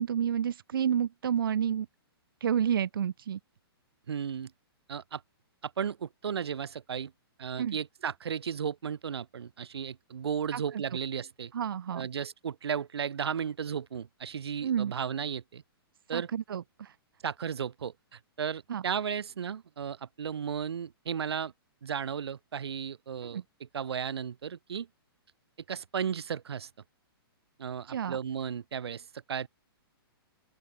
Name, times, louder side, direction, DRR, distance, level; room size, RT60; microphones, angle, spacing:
voice 1, 0.0-1.9 2.4-3.4 7.6-7.8 10.5-10.8 11.5-12.1 14.6-14.9 16.1-16.9 18.7-18.8 23.3-23.4 27.9-28.2, right 9 dB, 60° right, 1.0 m, -30 dB
voice 2, 4.1-4.5 4.9-5.2 5.6-7.1 7.4-11.5 11.9-15.6 16.1-16.3 17.2-21.5 21.8-24.9 25.7-26.7 27.6-29.5, right 7 dB, 85° right, 2.9 m, -35 dB
open air
hypercardioid pair, 180°, 13 cm